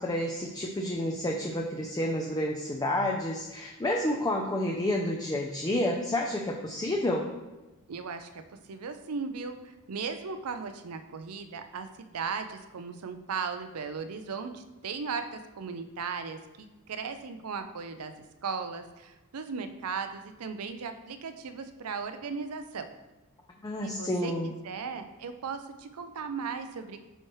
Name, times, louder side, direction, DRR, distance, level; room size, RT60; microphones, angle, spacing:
voice 1, 0.0-7.3 23.6-24.5, left 1 dB, 15° left, 0 dB, 0.5 m, -30 dB
voice 2, 7.9-8.4 8.7-18.1 18.4-22.9 23.8-27.0, right 5 dB, 80° right, 8 dB, 0.6 m, -37 dB
9.0 x 4.4 x 3.2 m, 1.1 s
head